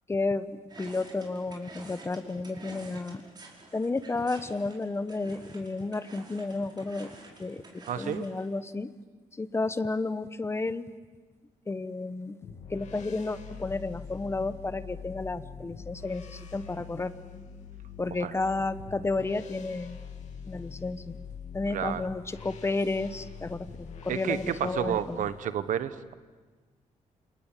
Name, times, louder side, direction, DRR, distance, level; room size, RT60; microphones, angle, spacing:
voice 1, 0.1-3.2 3.7-7.1 7.4-8.9 9.4-10.8 11.7-12.4 12.7-17.1 18.0-20.0 20.5-21.2 21.5-23.7 24.0-25.2, left 3 dB, 20° left, 13 dB, 1.0 m, -32 dB
sound 1, 0.7-8.5, right 3 dB, 35° right, 5.4 m, -50 dB
voice 2, 7.9-8.2 18.2-18.4 21.7-22.1 24.1-26.1, right 9 dB, 75° right, 13 dB, 1.3 m, -31 dB
sound 2, 12.4-25.2, left 6 dB, 65° left, 2.7 m, -44 dB
28.5 x 27.5 x 7.5 m, 1.4 s
cardioid pair, 120°, 13 cm